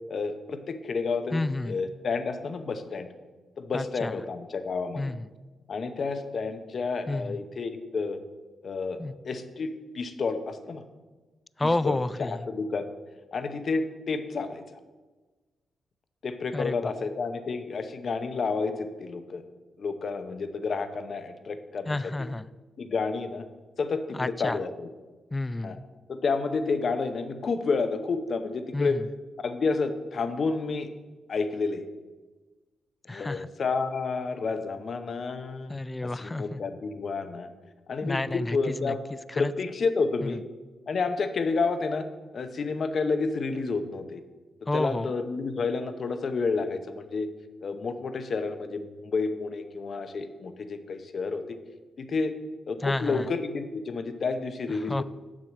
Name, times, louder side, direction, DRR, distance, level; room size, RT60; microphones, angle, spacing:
voice 1, 0.1-3.1 3.6-5.0 5.7-8.2 8.6-9.0 9.2-10.8 11.6-12.9 13.3-14.8 16.2-19.4 19.8-22.1 22.8-23.4 23.8-24.9 25.6-25.8 26.1-29.0 29.4-30.9 31.3-31.9 33.0-35.7 36.0-37.5 37.9-39.0 39.3-40.4 40.9-42.1 42.3-44.2 44.6-47.3 47.6-51.6 52.0-52.4 52.7-55.0, left 4 dB, 50° left, 9 dB, 0.8 m, -30 dB
voice 2, 1.3-1.8 3.7-4.1 5.0-5.3 7.1-7.4 9.0-9.2 11.6-12.4 16.5-16.9 21.9-22.5 24.1-24.6 25.3-25.8 28.7-29.1 33.1-33.5 35.7-36.6 38.0-39.5 40.2-40.3 44.7-45.1 52.8-53.3 54.9-55.0, left 2 dB, 15° left, 17 dB, 0.3 m, -30 dB
7.4 x 6.4 x 7.2 m, 1.3 s
cardioid pair, 110°, 0 cm